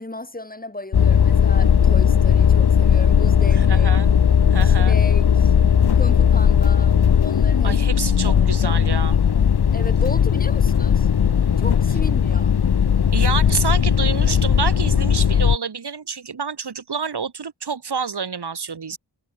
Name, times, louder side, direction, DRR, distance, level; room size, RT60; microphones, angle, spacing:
voice 1, 0.0-3.9 4.6-5.5 5.9-7.8 8.2-8.8 9.7-11.1 11.6-12.6, left 2 dB, 20° left, 5.0 m, -35 dB
sound 1, 0.9-15.6, left 8 dB, 70° left, 1.1 m, -17 dB
voice 2, 3.5-4.1 4.5-5.0 7.6-9.2 13.1-19.0, right 6 dB, 75° right, 3.2 m, -28 dB
wide cardioid pair, 85°, 40 cm